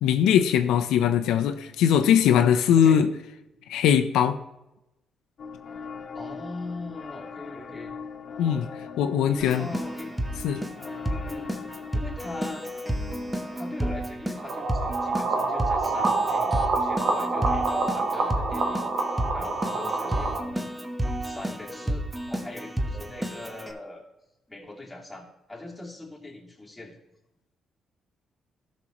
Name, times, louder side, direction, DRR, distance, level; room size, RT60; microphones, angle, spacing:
voice 1, 0.0-3.1 3.7-4.4 8.4-8.6 9.0-9.7 10.4-10.6, left 9 dB, 90° left, 7 dB, 0.5 m, -21 dB
sound 1, 5.4-14.0, left 5 dB, 55° left, 0.7 m, -41 dB
voice 2, 6.1-7.9 8.4-8.6 9.3-10.4 11.0-11.5 11.9-12.7 13.6-20.7 21.2-24.1 24.5-26.9, left 2 dB, 5° left, -4 dB, 2.4 m, -41 dB
Keyboard (musical), 9.4-23.7, right 1 dB, 10° right, 1.0 m, -32 dB
sound 2, 14.4-20.4, right 3 dB, 65° right, 1.3 m, -27 dB
13.0 x 6.2 x 3.0 m, 0.93 s
cardioid pair, 90°, 0 cm